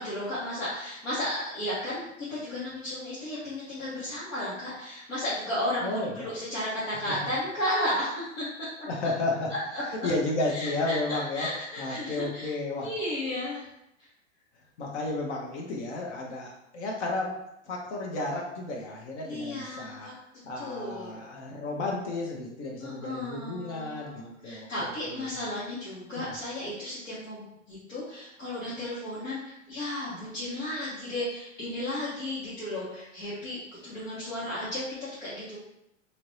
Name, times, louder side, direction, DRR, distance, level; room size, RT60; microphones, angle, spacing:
voice 1, 0.0-8.5 9.7-10.1 10.5-13.7 14.0-14.1 19.2-20.1 20.5-21.2 22.8-35.6, left 1 dB, 85° left, -10 dB, 1.3 m, -34 dB
voice 2, 5.8-6.3 7.0-7.1 8.9-9.5 9.9-11.5 11.8-12.9 14.8-17.4 17.7-20.1 20.4-25.4 26.2-26.3, left 2 dB, 65° left, -1 dB, 0.7 m, -33 dB
2.8 x 2.5 x 3.1 m, 0.83 s
hypercardioid pair, 120°, 37 cm